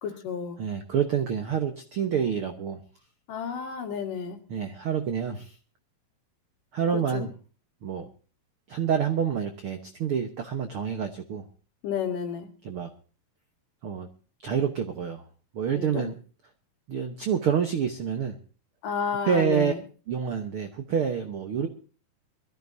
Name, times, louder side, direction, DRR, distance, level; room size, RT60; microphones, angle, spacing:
voice 1, 0.0-0.6 3.3-4.4 6.9-7.3 11.8-12.5 15.7-16.1 18.8-19.8, left 6 dB, 65° left, 5 dB, 3.2 m, -31 dB
voice 2, 0.6-2.8 4.5-5.5 6.7-7.3 7.8-8.1 8.7-11.5 12.6-12.9 13.8-14.1 14.4-15.2 15.5-16.1 16.9-18.3 19.2-19.7 20.1-21.7, right 7 dB, 80° right, 6 dB, 1.2 m, -27 dB
23.5 x 14.0 x 2.7 m, 0.38 s
omnidirectional pair, 4.3 m